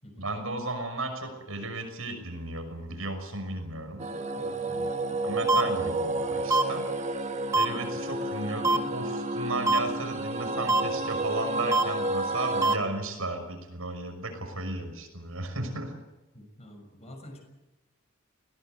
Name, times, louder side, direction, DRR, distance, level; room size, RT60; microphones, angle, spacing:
voice 1, 0.2-4.1 5.2-6.8 7.5-15.9, right 2 dB, 85° right, 5 dB, 6.0 m, -34 dB
sound 1, 4.0-12.8, right 2 dB, 35° right, 1.5 m, -31 dB
voice 2, 4.3-5.3 16.3-17.4, equal, 30° left, 4 dB, 6.4 m, -48 dB
sound 2, 5.5-5.6 6.5-6.6 7.5-7.7 8.6-8.8 9.7-9.8 10.7-10.8 11.7-11.8 12.6-12.7, right 3 dB, 15° right, 1.2 m, -22 dB
21.5 x 18.0 x 9.5 m, 1.0 s
head